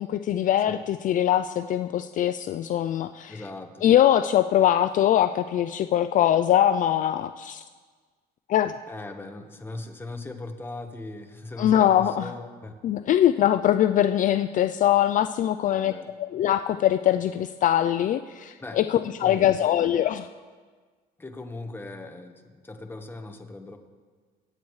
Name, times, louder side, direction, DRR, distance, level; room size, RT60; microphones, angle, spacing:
voice 1, 0.0-3.4 3.8-7.6 8.5-8.7 11.6-12.3 12.8-15.9 16.2-20.3, left 11 dB, 50° left, 10 dB, 0.4 m, -22 dB
voice 2, 3.3-3.9 8.9-12.8 15.7-16.1 18.6-18.8 19.2-19.7 21.2-23.8, left 2 dB, 15° left, 4 dB, 1.2 m, -39 dB
24.0 x 8.5 x 3.2 m, 1.5 s
cardioid pair, 110°, 17 cm